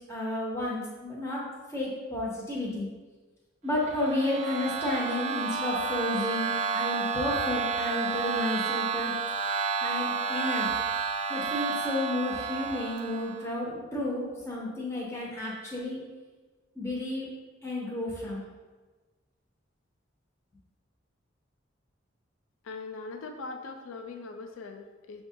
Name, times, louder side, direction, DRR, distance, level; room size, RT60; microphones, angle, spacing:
voice 1, 0.1-1.5 1.7-2.9 3.6-9.1 9.8-10.8 11.3-16.0 16.8-17.3 17.6-18.4, left 1 dB, 15° left, -5 dB, 0.7 m, -32 dB
sound 1, 3.8-13.5, right 5 dB, 40° right, 0.3 m, -31 dB
voice 2, 22.6-25.2, left 3 dB, 90° left, 4 dB, 0.4 m, -41 dB
6.3 x 2.3 x 2.7 m, 1.3 s
head